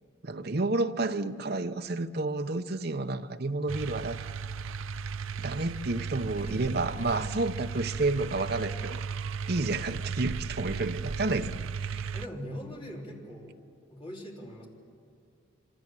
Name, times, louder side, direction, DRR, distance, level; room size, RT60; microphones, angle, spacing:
voice 1, 0.2-4.4 5.4-9.0 9.5-12.1, right 2 dB, 50° right, 0.8 m, -30 dB
sound 1, 3.7-12.3, right 5 dB, 80° right, 0.5 m, -36 dB
voice 2, 6.4-7.3 12.1-13.6 13.9-14.7, equal, 25° left, 3.6 m, -41 dB
25.5 x 25.0 x 7.6 m
head